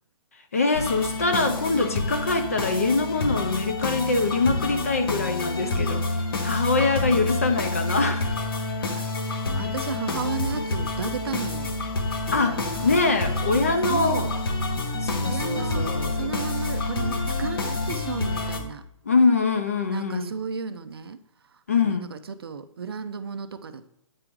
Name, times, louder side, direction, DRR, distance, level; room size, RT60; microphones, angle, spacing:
voice 1, 0.5-6.2 6.4-8.4 12.3-14.3 15.0-16.3 19.1-20.3 21.7-22.1, left 3 dB, 25° left, 8 dB, 0.4 m, -24 dB
sound 1, 0.7-18.6, left 2 dB, 45° left, 0.9 m, -28 dB
voice 2, 9.6-11.8 12.5-13.0 13.9-14.3 15.2-18.8 19.9-21.2 21.7-23.9, right 6 dB, 45° right, 11 dB, 0.5 m, -33 dB
8.6 x 3.7 x 4.5 m, 0.77 s
hypercardioid pair, 180°, 17 cm